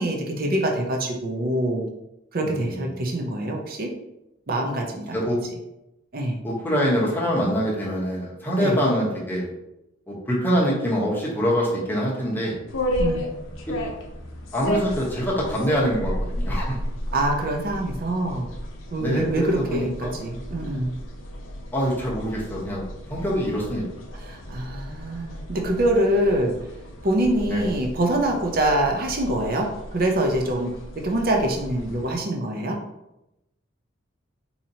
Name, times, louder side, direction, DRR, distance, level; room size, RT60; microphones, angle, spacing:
voice 1, 0.0-1.8 2.3-3.9 4.5-5.2 6.1-6.4 8.6-8.8 13.0-13.2 17.1-18.5 18.9-20.9 24.2-26.6 27.0-32.8, right 1 dB, 45° right, 2 dB, 0.5 m, -24 dB
voice 2, 2.4-2.8 5.1-5.4 6.4-9.4 10.1-12.6 13.7-13.8 14.5-16.8 19.0-20.1 21.7-22.8 23.1-23.8 27.4-27.7, equal, 10° left, -5 dB, 0.8 m, -24 dB
sound 1, 12.7-32.2, equal, 75° left, 0.6 m, -34 dB
4.2 x 2.8 x 2.7 m, 0.88 s
head